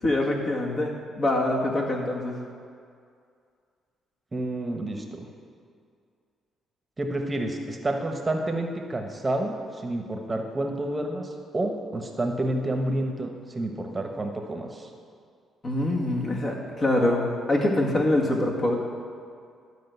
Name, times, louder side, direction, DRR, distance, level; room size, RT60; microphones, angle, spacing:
voice 1, 0.0-2.4 15.6-18.8, left 1 dB, 40° left, -1 dB, 2.0 m, -24 dB
voice 2, 4.3-5.3 7.0-14.9, right 1 dB, 20° right, 3 dB, 1.2 m, -29 dB
12.0 x 5.0 x 8.1 m, 2.3 s
cardioid pair, 90°, 0 cm